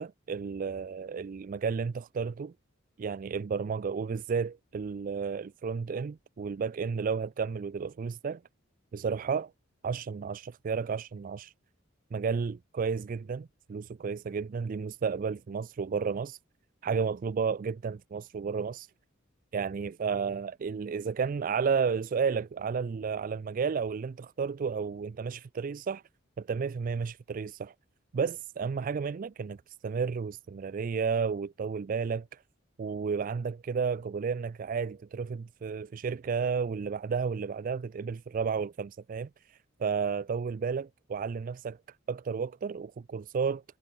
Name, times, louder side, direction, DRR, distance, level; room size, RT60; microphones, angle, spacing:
voice 1, 0.0-2.5 3.0-8.4 8.9-9.5 9.8-11.5 12.1-16.4 16.8-18.9 19.5-26.0 26.4-27.7 28.1-32.4 32.8-43.6, right 5 dB, 40° right, 0.4 m, -32 dB
head